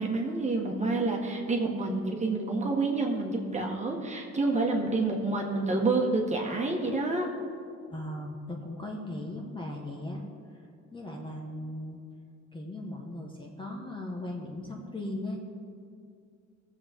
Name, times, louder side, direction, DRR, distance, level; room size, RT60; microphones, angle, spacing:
voice 1, 0.0-7.3, right 3 dB, 25° right, -1 dB, 1.6 m, -28 dB
voice 2, 7.9-10.2 10.9-12.0 12.5-15.5, left 1 dB, 15° left, 0 dB, 1.3 m, -38 dB
18.5 x 7.4 x 3.6 m, 2.4 s
cardioid pair, 130°, 29 cm